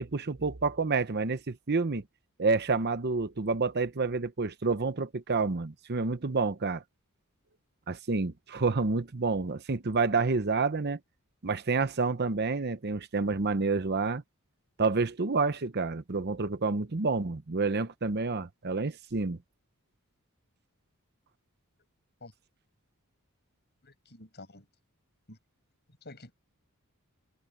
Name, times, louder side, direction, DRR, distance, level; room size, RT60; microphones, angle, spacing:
voice 1, 0.0-2.0 2.4-6.8 7.9-11.0 11.4-14.2 14.8-19.4, right 4 dB, 45° right, 0.8 m, -29 dB
voice 2, 24.1-24.7 25.3-25.4 26.0-26.3, left 2 dB, 50° left, 7.4 m, -47 dB
head